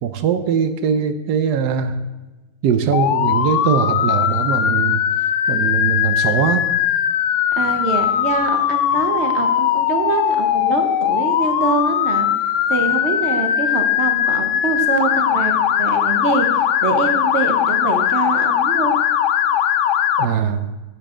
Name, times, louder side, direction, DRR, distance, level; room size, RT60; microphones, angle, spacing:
voice 1, 0.0-1.9 2.6-5.0 5.5-6.6 20.2-20.7, right 7 dB, 85° right, 9 dB, 1.3 m, -20 dB
Motor vehicle (road) / Siren, 2.9-20.2, left 10 dB, 65° left, 0.8 m, -19 dB
voice 2, 7.5-12.3 12.7-18.9, right 4 dB, 50° right, 6 dB, 1.2 m, -24 dB
11.0 x 7.8 x 3.7 m, 1.1 s
omnidirectional pair, 1.7 m